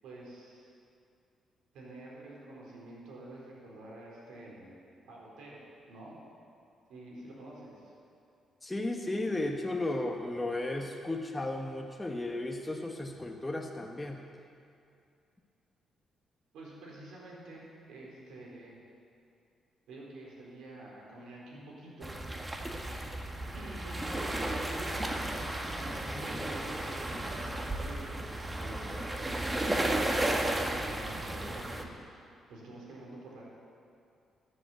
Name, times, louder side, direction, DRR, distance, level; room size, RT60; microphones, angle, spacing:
voice 1, 0.0-0.7 1.7-4.7 5.0-5.6 5.9-6.1 6.9-7.9 16.5-18.8 19.9-22.2 23.5-25.5 25.8-33.5, right 1 dB, 85° right, -4 dB, 4.2 m, -48 dB
voice 2, 8.6-14.2, left 2 dB, 15° left, 1 dB, 1.1 m, -34 dB
sound 1, 22.0-31.8, right 1 dB, 20° right, 1.5 m, -34 dB
14.0 x 7.9 x 8.0 m, 2.5 s
cardioid pair, 75°, 0 cm